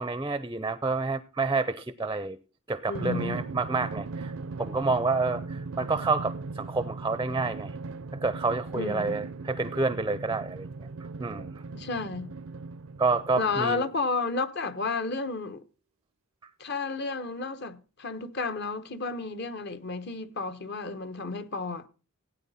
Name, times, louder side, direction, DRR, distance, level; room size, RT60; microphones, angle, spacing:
voice 1, 0.0-2.4 2.7-4.3 4.6-7.8 8.2-10.7 11.2-11.6 13.0-13.8, right 3 dB, 15° right, 0.5 m, -29 dB
voice 2, 2.9-3.4 8.7-9.3 11.7-12.3 13.4-15.6 16.6-21.9, left 4 dB, 50° left, 1.0 m, -32 dB
Drum, 2.9-14.0, right 3 dB, 65° right, 0.5 m, -38 dB
16.5 x 9.0 x 4.1 m
head